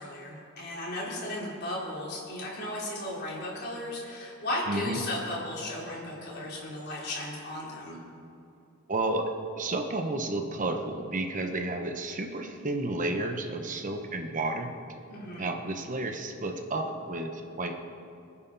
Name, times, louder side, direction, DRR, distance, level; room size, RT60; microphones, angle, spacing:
voice 1, 0.0-8.0 15.1-15.5, left 1 dB, 55° left, -5 dB, 4.1 m, -35 dB
voice 2, 4.7-5.0 8.9-14.8 15.4-17.7, right 2 dB, 40° right, 4 dB, 1.0 m, -31 dB
25.5 x 9.7 x 4.0 m, 2.6 s
head